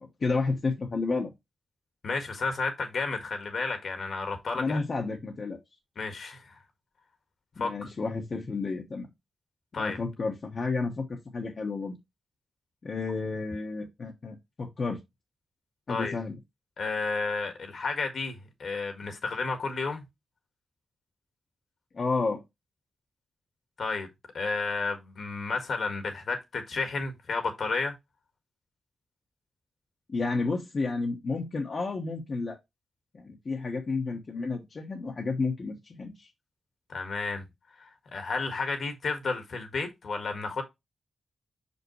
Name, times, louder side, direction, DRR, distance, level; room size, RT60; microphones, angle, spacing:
voice 1, 0.2-1.3 4.5-5.6 7.6-9.1 9.8-11.9 12.8-15.0 15.9-16.4 21.9-22.4 30.1-32.6 33.1-36.3, left 3 dB, 45° left, 1.2 m, -31 dB
voice 2, 2.0-4.8 6.0-6.6 7.6-7.9 9.7-10.0 15.9-16.2 16.8-20.0 23.8-24.1 24.3-27.9 36.9-37.5 37.8-40.6, left 4 dB, 65° left, 1.7 m, -32 dB
5.9 x 5.3 x 3.2 m
wide cardioid pair, 110°, 0 cm